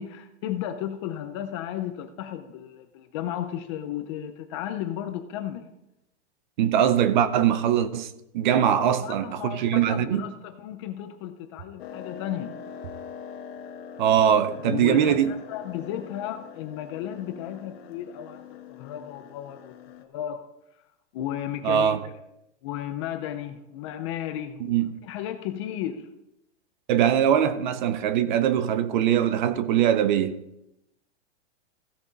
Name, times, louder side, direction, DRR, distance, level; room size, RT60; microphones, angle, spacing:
voice 1, 0.0-5.7 8.5-12.6 14.6-19.7 20.0-20.5 21.1-22.2 22.6-24.8 25.0-26.1, left 11 dB, 25° left, 0.5 m, -34 dB
voice 2, 6.6-10.2 14.0-15.3 21.6-22.0 24.7-24.9 26.9-30.4, right 9 dB, 40° right, 0.7 m, -22 dB
sound 1, 11.8-20.0, left 7 dB, 60° left, 1.3 m, -43 dB
15.5 x 7.0 x 4.0 m
supercardioid pair, 165°, 35 cm